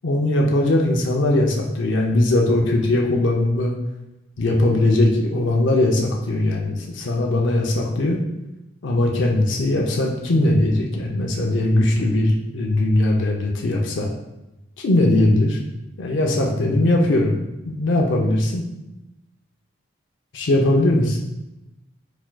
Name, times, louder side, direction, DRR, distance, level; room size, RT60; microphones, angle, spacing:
voice 1, 0.0-3.7 4.4-8.2 8.8-14.1 14.8-15.6 16.0-17.4 17.6-18.6 20.3-21.2, left 1 dB, 70° left, -1 dB, 0.5 m, -20 dB
4.4 x 4.4 x 2.2 m, 0.96 s
head